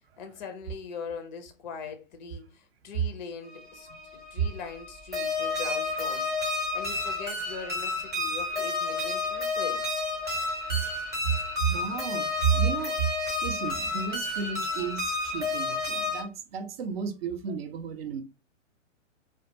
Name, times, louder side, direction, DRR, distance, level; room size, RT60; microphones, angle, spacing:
voice 1, 0.2-6.3 6.7-9.9, left 5 dB, 40° left, 0.4 m, -41 dB
sound 1, 3.5-16.2, left 3 dB, 10° right, 0.7 m, -31 dB
voice 2, 11.2-13.1 13.4-18.2, right 7 dB, 50° right, 0.5 m, -31 dB
2.2 x 2.1 x 2.7 m
figure-of-eight pair, 125°, 38 cm